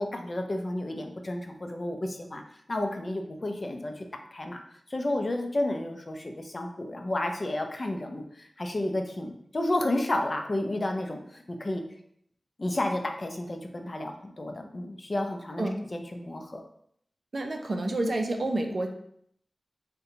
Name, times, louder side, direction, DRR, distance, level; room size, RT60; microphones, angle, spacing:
voice 1, 0.0-2.4 2.7-4.0 4.3-4.6 4.9-11.8 12.6-16.6, left 1 dB, 45° left, 4 dB, 0.5 m, -31 dB
voice 2, 17.3-18.9, right 2 dB, 60° right, 3 dB, 0.4 m, -29 dB
2.7 x 2.2 x 3.8 m, 0.69 s
cardioid pair, 45°, 0 cm